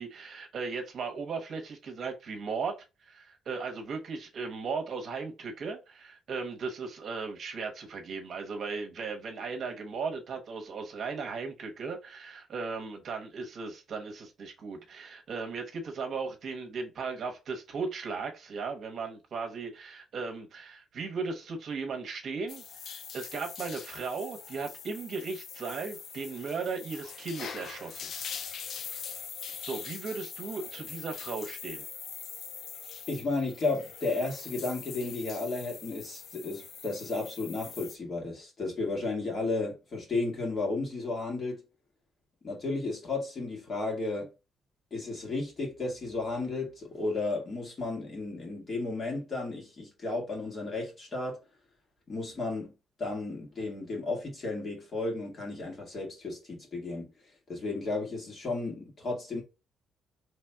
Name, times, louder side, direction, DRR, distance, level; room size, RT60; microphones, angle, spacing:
voice 1, 0.0-28.1 29.6-31.8, right 4 dB, 55° right, 1.0 m, -37 dB
sound 1, 22.5-38.0, left 7 dB, 55° left, 0.5 m, -43 dB
voice 2, 33.1-41.6 42.4-44.3 44.9-51.4 52.1-52.7 53.0-57.1 57.5-59.4, left 3 dB, 40° left, 1.9 m, -33 dB
4.1 x 3.2 x 2.3 m
cardioid pair, 105°, 0 cm